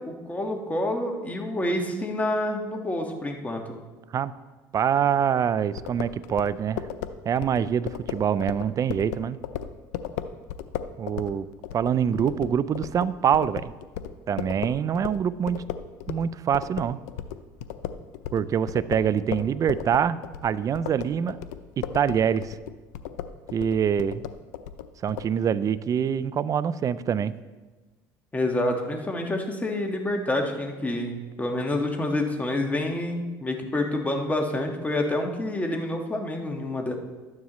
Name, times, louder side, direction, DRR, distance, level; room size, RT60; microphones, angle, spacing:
voice 1, 0.0-3.8 28.3-36.9, left 1 dB, 15° left, 3 dB, 1.6 m, -28 dB
voice 2, 4.7-6.8 7.3-9.4 11.0-11.5 11.7-13.7 14.3-15.6 16.1-17.0 18.3-21.4 21.8-22.6 23.5-24.2 25.0-27.3, right 8 dB, 40° right, 17 dB, 0.4 m, -25 dB
sound 1, 5.8-16.3 16.5-25.3, left 10 dB, 85° left, 0.5 m, -35 dB
12.5 x 9.6 x 3.1 m, 1.3 s
supercardioid pair, 90°, 9 cm